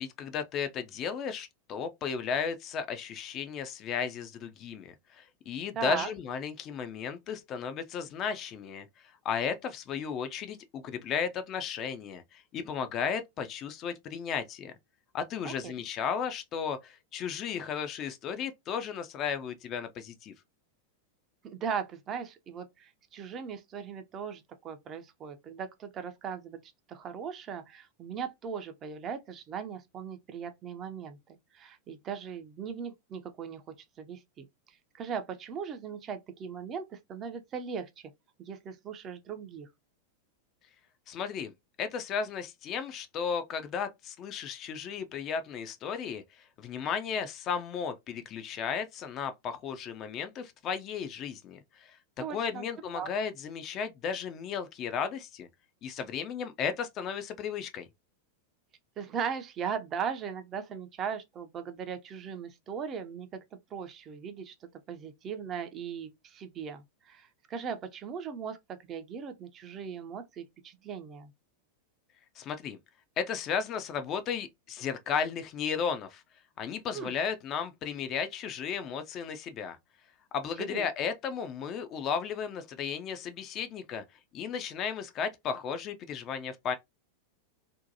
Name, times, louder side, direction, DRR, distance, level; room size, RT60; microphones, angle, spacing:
voice 1, 0.0-8.9 9.2-14.7 15.1-20.3 41.1-41.5 41.8-55.5 55.8-57.9 72.4-72.8 73.2-76.2 76.6-79.8 80.3-84.0 84.3-86.7, left 7 dB, 35° left, 0.4 m, -34 dB
voice 2, 5.7-6.1 15.4-15.7 21.4-31.2 31.5-33.6 34.0-38.1 38.4-39.7 52.2-52.7 52.9-53.1 59.0-63.4 63.7-71.3 76.9-77.1 80.7-80.9, right 7 dB, 30° right, 0.4 m, -38 dB
2.6 x 2.1 x 2.6 m
figure-of-eight pair, 90°, 0 cm